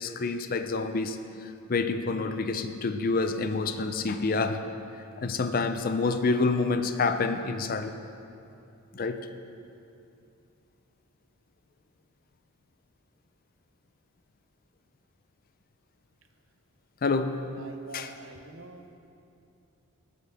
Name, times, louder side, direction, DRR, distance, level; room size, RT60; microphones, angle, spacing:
voice 1, 0.0-4.6 5.2-7.9 8.9-9.3 17.0-17.4 17.9-18.1, left 3 dB, 40° left, 9 dB, 0.4 m, -28 dB
voice 2, 17.6-19.0, right 2 dB, 60° right, 6 dB, 0.8 m, -46 dB
17.5 x 7.5 x 3.5 m, 2.6 s
head